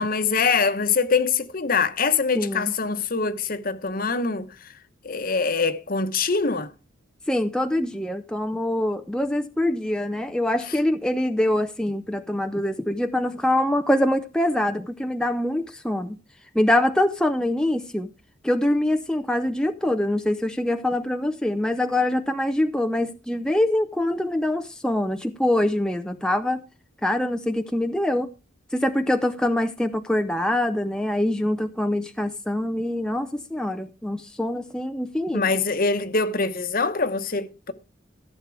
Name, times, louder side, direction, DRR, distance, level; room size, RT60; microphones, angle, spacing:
voice 1, 0.0-4.7 5.0-6.7 35.3-37.7, left 4 dB, 45° left, 1.0 m, -24 dB
voice 2, 2.3-2.7 7.3-16.2 16.5-18.1 18.4-26.6 27.0-28.3 28.7-35.4, left 1 dB, 5° left, 0.5 m, -24 dB
14.5 x 7.4 x 4.7 m
head